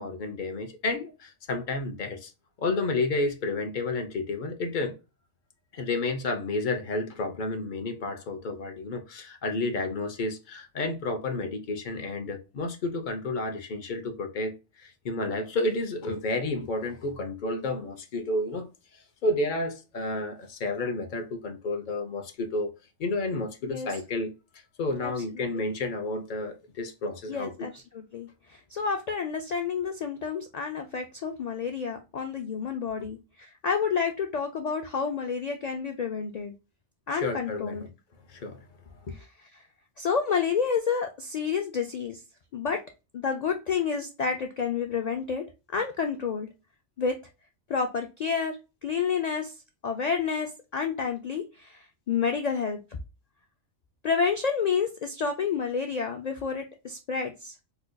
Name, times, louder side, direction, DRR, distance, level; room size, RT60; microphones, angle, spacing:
voice 1, 0.0-2.3 2.6-4.9 5.7-18.7 19.2-22.7 23.0-24.3 24.8-27.5 37.1-37.9 38.3-38.6 39.0-39.2, left 2 dB, 50° left, 0.7 m, -31 dB
voice 2, 25.0-25.6 27.3-36.5 37.1-37.9 39.1-39.3 39.5-39.6 40.0-42.2 42.5-42.8 43.1-45.4 45.7-46.5 47.0-47.2 47.7-49.6 49.8-52.8 54.0-57.6, left 6 dB, 80° left, 0.3 m, -29 dB
4.3 x 2.5 x 2.2 m
omnidirectional pair, 1.2 m